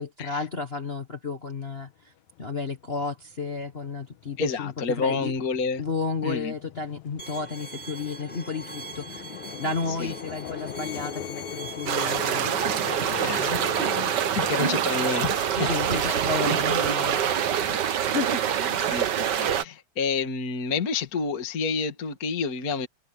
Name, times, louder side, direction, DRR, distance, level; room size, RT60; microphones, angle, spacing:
voice 1, 0.0-2.1 2.4-4.7 5.0-5.3 5.8-9.2 9.6-14.0 15.5-18.9, left 4 dB, 50° left, 0.7 m, -33 dB
sound 1, 2.3-2.5 2.9-17.8, left 10 dB, 75° left, 2.4 m, -41 dB
voice 2, 4.4-5.8 6.2-6.5 9.9-10.1 13.2-15.7 15.9-16.1 18.9-22.9, left 5 dB, 35° left, 2.0 m, -29 dB
Bowed string instrument, 7.2-12.2, right 1 dB, 5° left, 5.7 m, -41 dB
sound 2, 11.9-19.6, right 9 dB, 80° right, 0.9 m, -25 dB
omnidirectional pair, 3.4 m